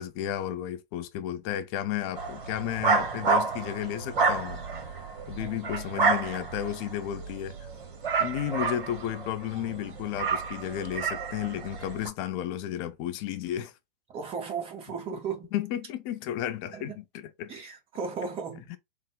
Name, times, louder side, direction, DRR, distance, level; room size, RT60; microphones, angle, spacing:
voice 1, 0.0-4.6 5.3-7.7 8.2-13.7 15.5-17.5 18.7-18.8, left 11 dB, 25° left, 0.5 m, -33 dB
sound 1, 2.1-12.1, right 4 dB, 55° right, 1.1 m, -30 dB
voice 2, 14.1-15.5 16.7-17.0 17.5-18.7, right 5 dB, 20° right, 0.9 m, -36 dB
3.5 x 2.0 x 3.8 m
figure-of-eight pair, 115°, 30 cm